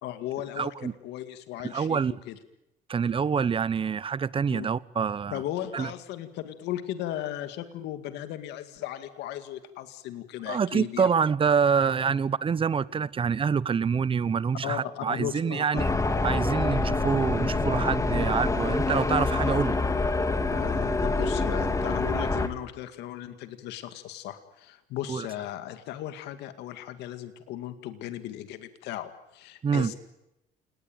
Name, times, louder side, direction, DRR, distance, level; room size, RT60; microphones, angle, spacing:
voice 1, 0.0-2.4 4.5-4.7 5.3-11.1 14.6-15.9 20.5-29.9, left 12 dB, 85° left, 2.2 m, -36 dB
voice 2, 0.6-0.9 1.6-2.1 2.9-5.4 5.7-5.9 10.5-15.9 16.2-19.8 25.1-25.3 29.6-29.9, right 6 dB, 30° right, 1.0 m, -26 dB
sound 1, 15.8-22.5, left 3 dB, 20° left, 2.6 m, -26 dB
29.0 x 20.0 x 9.2 m
cardioid pair, 110°, 17 cm